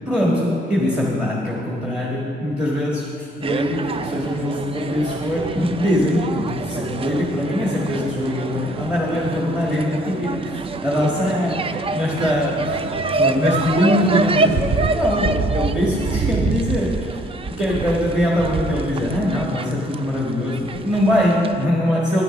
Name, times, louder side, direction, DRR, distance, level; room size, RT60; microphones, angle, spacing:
voice 1, 0.0-12.8 13.1-17.2 17.5-22.2, left 1 dB, 5° right, -4 dB, 1.7 m, -22 dB
sound 1, 3.4-21.6, right 4 dB, 30° right, 0.4 m, -26 dB
9.9 x 9.2 x 5.3 m, 3.0 s
cardioid pair, 90°, 20 cm